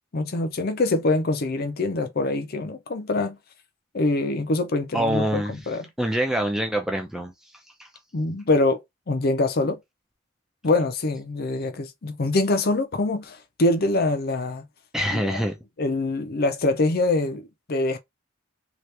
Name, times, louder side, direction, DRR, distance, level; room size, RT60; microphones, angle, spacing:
voice 1, 0.1-3.4 3.9-5.9 8.1-9.8 10.6-14.6 15.1-15.4 15.8-18.0, left 2 dB, 45° left, 0.6 m, -24 dB
voice 2, 4.9-5.6 6.0-7.3 7.8-7.9 14.9-15.5, equal, ahead, 0.4 m, -25 dB
2.9 x 2.4 x 3.2 m
head